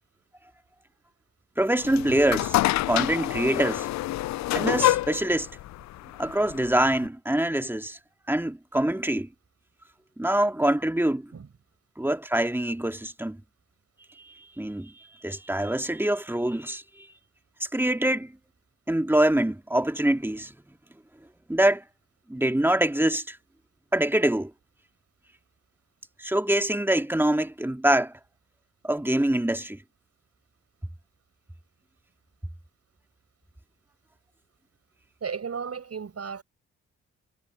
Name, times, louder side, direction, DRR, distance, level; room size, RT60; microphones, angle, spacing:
voice 1, 1.6-2.6 2.9-3.9 4.5-5.5 6.2-8.0 8.3-9.3 10.2-11.3 12.0-13.4 14.1-17.1 17.7-18.3 18.9-20.5 21.5-21.8 22.3-23.4 23.9-24.5 26.2-28.2 28.8-29.8, right 1 dB, 5° right, 2.2 m, -25 dB
sound 1, 1.8-7.1, left 15 dB, 65° left, 0.4 m, -27 dB
voice 2, 35.2-36.4, right 6 dB, 55° right, 6.9 m, -34 dB
supercardioid pair, 45°, 30 cm